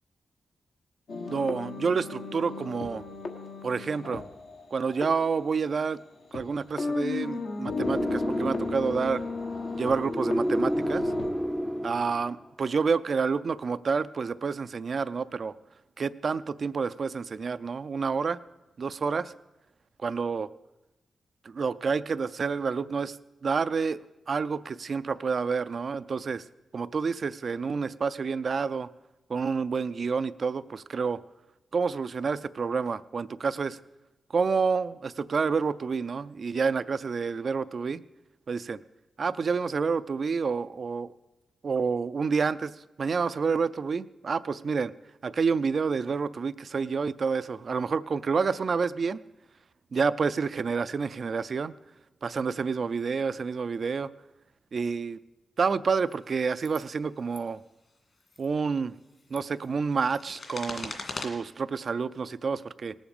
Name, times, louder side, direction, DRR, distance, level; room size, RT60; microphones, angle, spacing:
sound 1, 1.1-6.4 6.8-11.3, left 4 dB, 80° left, 1.4 m, -36 dB
voice 1, 1.3-3.0 3.6-4.2 4.7-6.0 6.3-9.2 9.8-11.1 11.8-15.5 16.0-18.4 18.8-19.3 20.0-20.5 21.4-23.2 23.4-26.4 26.7-28.9 29.3-31.2 31.7-33.8 34.3-38.0 38.5-38.8 39.2-41.1 41.6-44.9 45.2-49.2 49.9-51.7 52.2-54.1 54.7-55.2 55.6-57.6 58.4-58.9 59.3-60.9 61.2-63.0, right 5 dB, 60° right, 14 dB, 0.4 m, -29 dB
sound 2, 7.8-12.4, equal, ahead, 0.5 m, -30 dB
sound 3, 56.0-56.2 56.6-56.9 57.2-57.4 58.2-58.5 59.1-61.3, left 3 dB, 50° left, 2.2 m, -40 dB
19.0 x 7.1 x 5.2 m, 1.0 s
cardioid pair, 55°, 0 cm